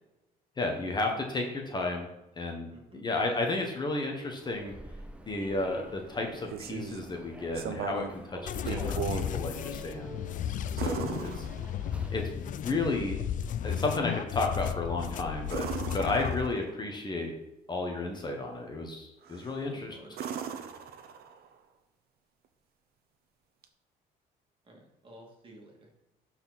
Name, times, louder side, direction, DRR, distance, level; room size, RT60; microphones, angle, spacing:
voice 1, 0.6-2.1 2.4-4.7 5.3-10.2 10.7-11.5 12.1-13.2 13.6-17.3 17.7-20.0, left 2 dB, 25° left, 2 dB, 1.3 m, -33 dB
voice 2, 2.7-3.0 8.9-9.0 19.6-20.3 24.6-25.9, right 1 dB, 30° right, -1 dB, 2.5 m, -53 dB
Human voice / Subway metro underground, 4.4-12.3, right 1 dB, 5° right, 0.7 m, -47 dB
sound 1, 6.2-7.1 7.5-8.2 8.5-9.3 10.8-12.0 15.4-16.8 19.2-19.6 20.1-21.5 23.6-23.7, right 7 dB, 65° right, 0.9 m, -37 dB
sound 2, 8.5-16.5, left 9 dB, 50° left, 0.5 m, -34 dB
11.5 x 4.5 x 4.2 m, 0.92 s
cardioid pair, 110°, 17 cm